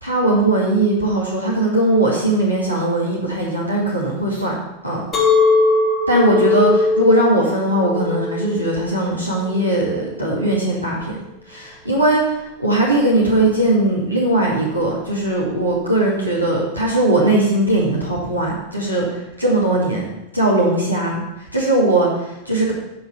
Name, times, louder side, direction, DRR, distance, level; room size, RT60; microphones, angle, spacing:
voice 1, 0.0-4.5 4.8-5.0 6.1-11.2 11.5-19.0 19.4-22.7, right 1 dB, 90° right, -4 dB, 2.2 m, -19 dB
Chink clink, 5.1-10.3, left 3 dB, 25° left, 2.9 m, -20 dB
10.5 x 5.6 x 6.9 m, 0.92 s
figure-of-eight pair, 90°, 0 cm